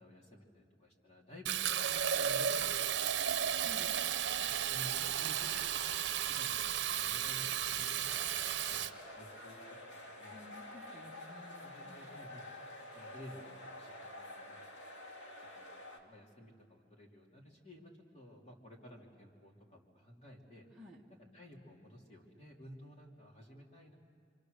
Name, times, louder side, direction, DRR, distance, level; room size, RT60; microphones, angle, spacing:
voice 1, 0.0-2.7 3.0-3.6 4.4-6.6 6.9-9.6 9.9-10.4 11.0-11.3 11.6-12.4 12.9-14.6 15.4-20.7 21.3-24.0, equal, 35° left, -2 dB, 3.2 m, -54 dB
Fill (with liquid), 1.4-8.9, right 9 dB, 70° right, 0.7 m, -34 dB
voice 2, 3.6-3.9 10.3-12.1 20.8-21.0, left 2 dB, 5° right, -5 dB, 1.4 m, -54 dB
sound 1, 8.0-16.0, left 1 dB, 85° left, 2.3 m, -49 dB
27.5 x 25.5 x 6.7 m, 2.1 s
head